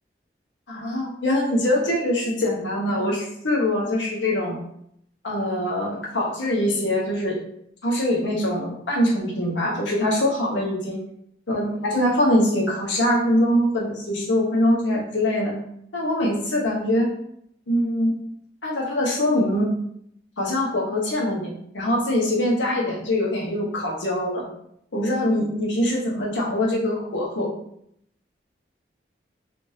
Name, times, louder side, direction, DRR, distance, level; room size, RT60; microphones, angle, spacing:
voice 1, 0.7-4.6 5.2-7.4 7.8-11.0 11.5-15.5 15.9-17.1 17.7-18.1 18.6-19.7 20.4-24.4 24.9-27.5, left 1 dB, 90° left, -2 dB, 0.9 m, -23 dB
2.7 x 2.5 x 3.1 m, 0.72 s
head